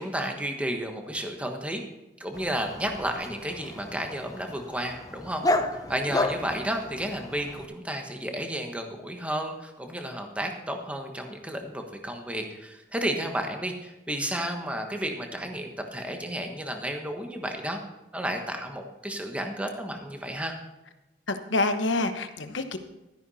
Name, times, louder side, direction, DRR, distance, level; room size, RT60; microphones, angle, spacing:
voice 1, 0.0-1.8 2.2-5.4 5.9-17.8 18.1-20.6, right 1 dB, 5° right, 3 dB, 1.3 m, -32 dB
Dog, 2.3-7.7, left 2 dB, 20° left, 0.7 m, -32 dB
voice 2, 21.3-22.8, left 2 dB, 85° left, 8 dB, 1.1 m, -27 dB
13.0 x 10.5 x 4.2 m, 0.99 s
head